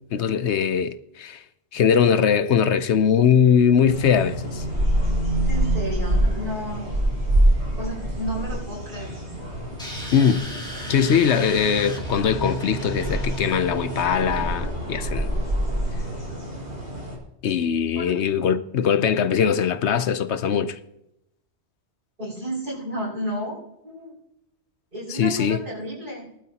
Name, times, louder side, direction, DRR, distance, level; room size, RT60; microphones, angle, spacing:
voice 1, 0.1-1.4 1.7-4.6 10.1-10.5 10.9-15.3 17.4-20.8 25.1-25.6, left 7 dB, 85° left, 1.0 m, -21 dB
sound 1, 3.9-17.2, right 1 dB, 80° right, 4.7 m, -26 dB
voice 2, 5.4-6.9 7.8-9.1 18.0-18.1 22.2-24.2 24.9-26.3, equal, 50° right, 6.2 m, -32 dB
sound 2, 9.8-14.6, right 1 dB, 5° left, 1.8 m, -35 dB
19.0 x 12.0 x 2.9 m
omnidirectional pair, 1.1 m